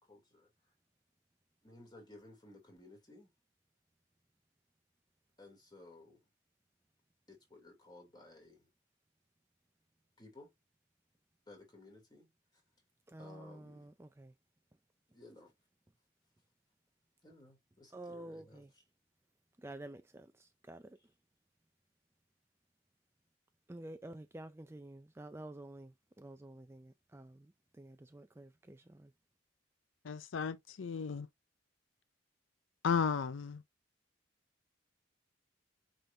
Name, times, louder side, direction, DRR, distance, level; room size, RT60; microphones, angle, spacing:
voice 1, 0.0-0.7 1.6-3.3 5.4-6.3 7.3-8.7 10.2-10.5 11.5-12.6 13.2-13.9 15.1-15.5 17.2-18.8, left 2 dB, 20° left, 2.9 m, -57 dB
voice 2, 13.1-14.3 17.9-18.7 19.6-21.0 23.7-29.1, right 1 dB, 15° right, 0.4 m, -50 dB
voice 3, 30.0-31.3 32.8-33.6, left 6 dB, 80° left, 0.5 m, -34 dB
8.8 x 3.9 x 2.7 m
head